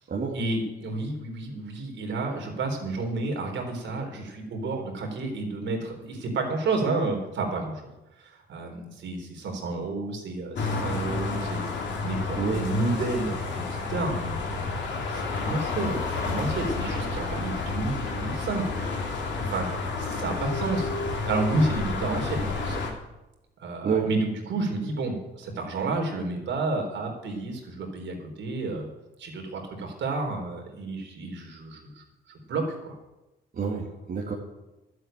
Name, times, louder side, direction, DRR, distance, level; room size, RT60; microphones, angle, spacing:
voice 1, 0.3-7.8 8.2-14.8 15.0-20.9 21.3-22.9 23.6-28.9 29.2-33.0, right 3 dB, 70° right, 2 dB, 3.9 m, -31 dB
sound 1, 10.5-22.9, left 3 dB, 65° left, 2.9 m, -30 dB
voice 2, 33.5-34.3, right 5 dB, 50° right, -2 dB, 2.2 m, -28 dB
12.0 x 8.1 x 9.0 m, 1.0 s
cardioid pair, 90°, 20 cm